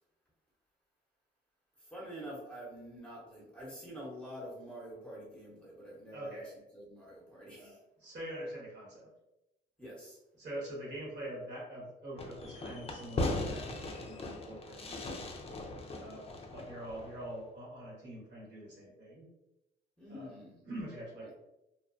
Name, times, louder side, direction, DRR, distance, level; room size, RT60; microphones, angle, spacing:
voice 1, 1.8-6.4 6.7-7.8 9.8-10.2 20.0-20.7, equal, 5° left, -6 dB, 0.9 m, -47 dB
voice 2, 6.1-6.5 8.0-9.1 10.4-15.3 16.0-19.3 20.1-21.3, right 1 dB, 60° right, -4 dB, 1.4 m, -44 dB
Fireworks, 12.2-17.4, left 2 dB, 30° left, 0.4 m, -39 dB
2.8 x 2.1 x 2.5 m, 0.94 s
cardioid pair, 90°, 20 cm